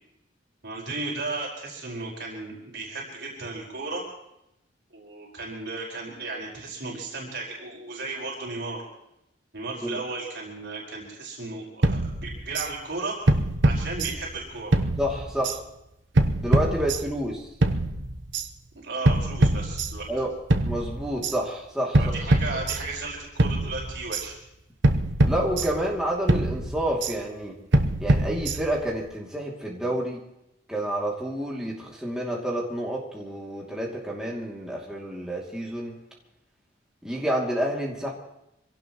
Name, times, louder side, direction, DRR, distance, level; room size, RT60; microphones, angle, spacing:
voice 1, 0.6-4.0 4.9-8.8 9.5-13.2 13.6-14.8 18.8-20.1 21.9-24.4, right 3 dB, 65° right, -3 dB, 5.1 m, -35 dB
sound 1, 11.8-12.7 13.3-14.4 14.7-15.6 16.2-17.3 17.6-18.5 19.1-20.2 20.5-21.4 21.9-23.1 23.4-24.3 24.8-26.0 26.3-27.2 27.7-28.9, right 1 dB, 80° right, 1.0 m, -24 dB
voice 2, 15.0-15.6 16.4-17.5 20.1-20.3 20.6-22.0 25.2-27.6 28.0-30.2 30.7-36.0 37.0-38.1, right 1 dB, 5° right, -4 dB, 2.7 m, -29 dB
25.0 x 17.5 x 3.1 m, 0.85 s
head